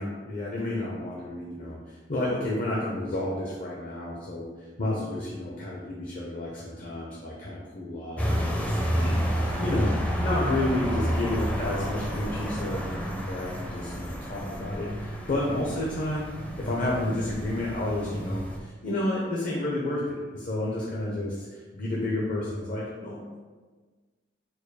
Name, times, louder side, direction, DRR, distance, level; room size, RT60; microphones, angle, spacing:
voice 1, 0.0-4.5 4.8-9.9 10.2-16.3 16.6-23.4, left 1 dB, 50° left, -4 dB, 0.7 m, -31 dB
sound 1, 8.2-18.6, equal, 5° left, 0.5 m, -30 dB
4.7 x 2.3 x 4.7 m, 1.4 s
head